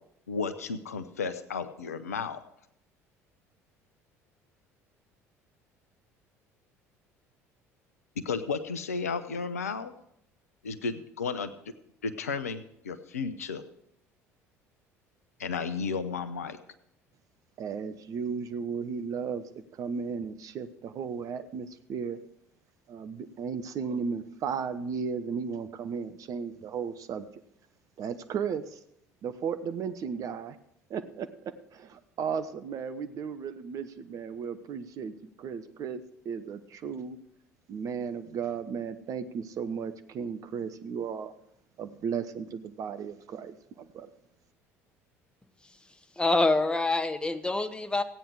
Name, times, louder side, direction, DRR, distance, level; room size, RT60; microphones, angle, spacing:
voice 1, 0.3-2.4 8.2-9.9 10.6-11.5 12.0-13.6 15.4-16.6, left 5 dB, 75° left, 11 dB, 0.8 m, -33 dB
voice 2, 17.6-19.4 19.8-22.2 22.9-27.3 28.0-28.8 29.2-30.6 30.9-31.3 31.7-37.2 37.7-41.3 41.8-44.1, right 6 dB, 45° right, 9 dB, 0.9 m, -35 dB
voice 3, 46.2-48.0, left 2 dB, 10° left, 9 dB, 1.1 m, -26 dB
15.5 x 9.1 x 4.8 m, 0.76 s
figure-of-eight pair, 60°, 8 cm